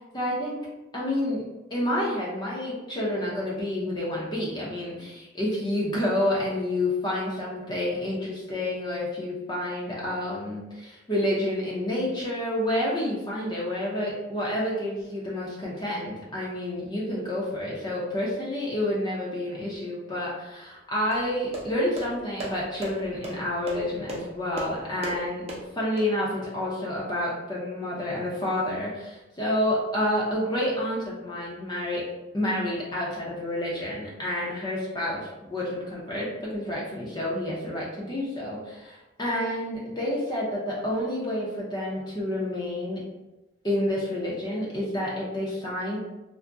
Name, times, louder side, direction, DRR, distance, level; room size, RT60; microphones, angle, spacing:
voice 1, 0.1-0.6 0.9-1.4 1.7-25.5 25.8-32.1 32.3-43.0 43.6-46.0, left 1 dB, 20° left, -5 dB, 0.6 m, -29 dB
sound 1, 21.1-26.0, right 1 dB, 30° right, 0.6 m, -38 dB
2.5 x 2.0 x 3.4 m, 1.0 s
head